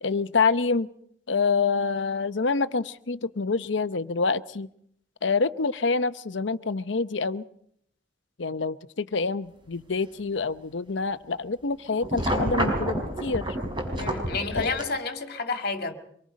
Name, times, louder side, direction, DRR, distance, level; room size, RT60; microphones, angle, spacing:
voice 1, 0.0-0.9 1.3-4.7 5.2-7.4 8.4-13.5 14.5-14.7, left 4 dB, 75° left, 13 dB, 0.8 m, -26 dB
sound 1, 12.0-14.8, right 1 dB, 25° right, 5.0 m, -28 dB
voice 2, 14.0-15.9, left 4 dB, 55° left, 6 dB, 2.2 m, -30 dB
24.5 x 23.0 x 5.2 m, 0.69 s
head